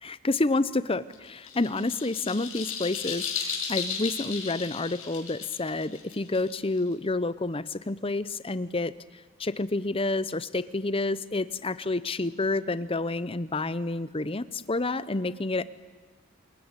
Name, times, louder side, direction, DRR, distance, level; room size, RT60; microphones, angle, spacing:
voice 1, 0.0-8.9 9.4-15.6, left 2 dB, 25° left, 15 dB, 0.8 m, -29 dB
sound 1, 1.1-6.9, left 6 dB, 65° left, 5.7 m, -35 dB
27.0 x 21.0 x 9.8 m, 1.3 s
head